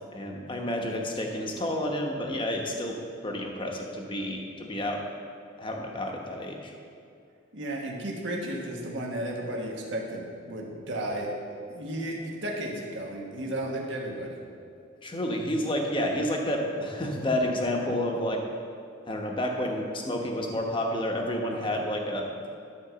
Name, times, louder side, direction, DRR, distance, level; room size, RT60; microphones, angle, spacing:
voice 1, 0.1-2.9 3.2-5.0 5.6-6.7 15.0-18.4 19.1-22.3, left 1 dB, 25° left, 1 dB, 1.0 m, -30 dB
voice 2, 7.5-11.3 11.7-14.4, right 1 dB, 60° right, -1 dB, 1.4 m, -33 dB
12.0 x 4.6 x 6.8 m, 2.5 s
head